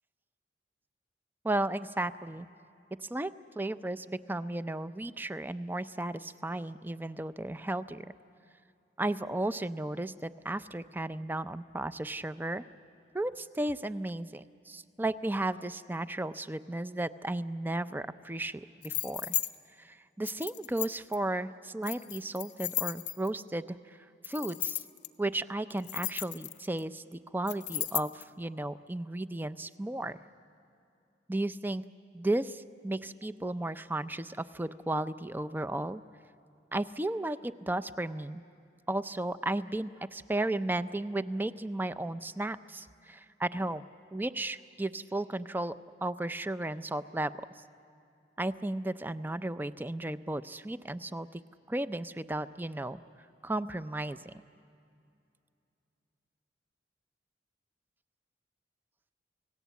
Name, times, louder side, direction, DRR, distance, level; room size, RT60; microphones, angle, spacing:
voice 1, 1.4-2.5 3.0-8.1 9.0-12.6 13.1-19.4 19.8-24.0 24.2-24.8 25.2-30.2 31.3-31.9 32.1-36.0 36.7-38.4 38.9-43.8 44.1-45.7 46.0-47.3 48.4-51.4 51.7-53.0 53.4-54.3, right 1 dB, 10° right, 14 dB, 0.5 m, -34 dB
sound 1, 18.8-19.5 20.3-21.2 21.8-23.4 24.2-25.1 25.7-26.8 27.5-28.2, left 14 dB, 85° left, 0.8 m, -34 dB
29.0 x 18.0 x 8.2 m, 2.6 s
head